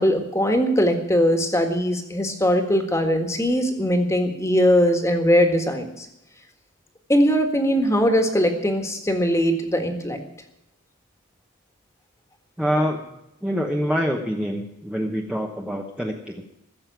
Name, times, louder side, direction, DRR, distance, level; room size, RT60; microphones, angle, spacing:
voice 1, 0.0-6.1 7.1-10.2, equal, 15° left, 5 dB, 1.6 m, -20 dB
voice 2, 12.6-13.0 13.4-16.5, equal, 5° right, 0 dB, 0.9 m, -25 dB
15.0 x 7.7 x 9.3 m, 0.86 s
head